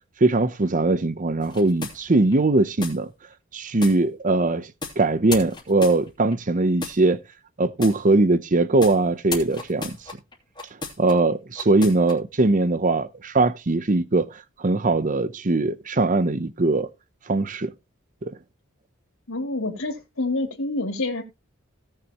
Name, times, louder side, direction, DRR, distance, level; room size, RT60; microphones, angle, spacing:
voice 1, 0.2-3.1 3.5-4.7 5.0-7.2 7.6-10.0 11.0-16.9 17.3-17.7 18.2-18.3, right 2 dB, 40° right, 0.8 m, -21 dB
sound 1, 1.4-2.3 2.8-3.0 3.8-4.0 4.8-5.0 5.3-6.3 6.8-7.0 7.8-8.0 8.8-9.0 9.3-11.1 11.6-12.1, left 3 dB, 20° left, 3.0 m, -34 dB
voice 2, 19.3-21.2, left 2 dB, 85° left, 3.0 m, -27 dB
17.5 x 6.8 x 3.0 m
head